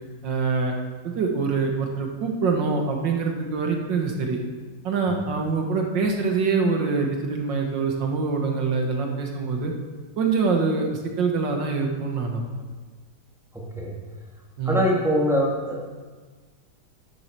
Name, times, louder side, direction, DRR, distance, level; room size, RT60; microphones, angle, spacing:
voice 1, 0.2-0.8 1.0-4.4 4.8-9.7 10.2-12.4 14.6-14.8, right 4 dB, 85° right, 2 dB, 2.1 m, -24 dB
voice 2, 14.6-15.8, equal, ahead, -3 dB, 2.3 m, -22 dB
11.5 x 7.5 x 6.8 m, 1.4 s
omnidirectional pair, 1.9 m